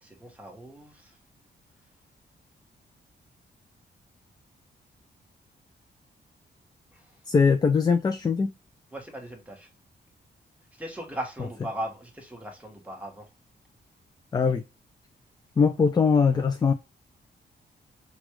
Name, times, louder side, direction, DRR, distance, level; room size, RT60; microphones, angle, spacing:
voice 1, 0.0-1.2 6.9-7.1 8.9-9.7 10.8-13.3, right 1 dB, 5° right, 1.2 m, -38 dB
voice 2, 7.3-8.5 14.3-14.6 15.6-16.7, left 5 dB, 20° left, 0.3 m, -21 dB
6.1 x 2.4 x 3.0 m
wide cardioid pair, 175°, 18 cm